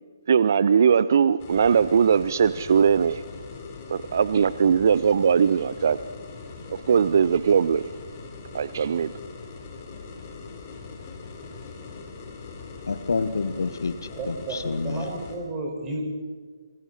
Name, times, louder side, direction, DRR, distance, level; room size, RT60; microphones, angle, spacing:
voice 1, 0.3-3.2 3.9-6.0 6.7-7.8 8.5-9.1, right 7 dB, 45° right, 0.6 m, -20 dB
sound 1, 1.4-15.4, left 4 dB, 30° left, 3.7 m, -41 dB
voice 2, 12.8-15.1, left 4 dB, 60° left, 1.2 m, -28 dB
voice 3, 14.1-16.0, right 2 dB, 15° right, 5.3 m, -32 dB
27.5 x 26.5 x 4.3 m
figure-of-eight pair, 140°, 2 cm